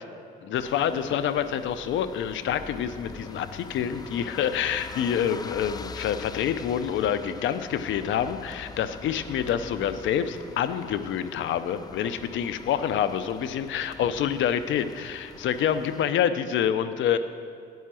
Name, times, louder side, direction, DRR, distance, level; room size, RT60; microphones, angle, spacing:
voice 1, 0.4-17.2, left 9 dB, 75° left, 12 dB, 0.5 m, -27 dB
sound 1, 0.5-16.1, left 4 dB, 20° left, 0.3 m, -43 dB
9.3 x 5.6 x 7.5 m, 2.4 s
cardioid pair, 90°, 20 cm